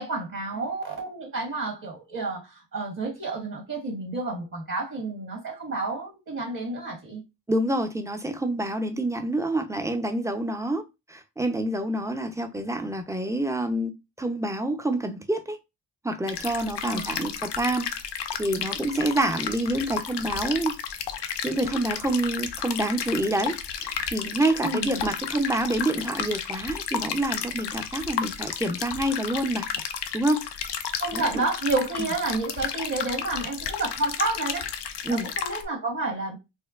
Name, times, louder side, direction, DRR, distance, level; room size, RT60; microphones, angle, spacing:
voice 1, 0.0-7.2 16.8-17.3 24.6-25.1 31.0-34.7 35.1-36.4, right 3 dB, 45° right, 1.5 m, -30 dB
voice 2, 7.5-10.8 11.1-15.6 16.0-17.9 18.4-20.8 21.4-23.5 23.8-29.7 30.1-30.4 31.1-31.5 35.0-35.3, right 1 dB, 5° right, 0.6 m, -27 dB
sound 1, 16.3-35.6, left 8 dB, 65° left, 0.6 m, -33 dB
4.3 x 2.2 x 2.4 m
cardioid pair, 50°, 45 cm